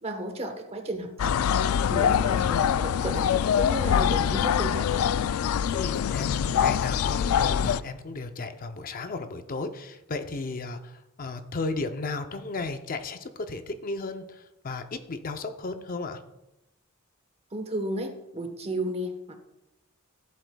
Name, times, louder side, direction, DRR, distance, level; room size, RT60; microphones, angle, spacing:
voice 1, 0.0-1.4 1.9-3.3 3.5-5.1 17.5-19.4, right 1 dB, 30° right, 6 dB, 1.1 m, -33 dB
sound 1, 1.2-7.8, left 8 dB, 90° left, 0.3 m, -24 dB
voice 2, 5.7-16.2, left 3 dB, 45° left, 8 dB, 0.6 m, -34 dB
15.0 x 8.0 x 2.3 m, 0.91 s
head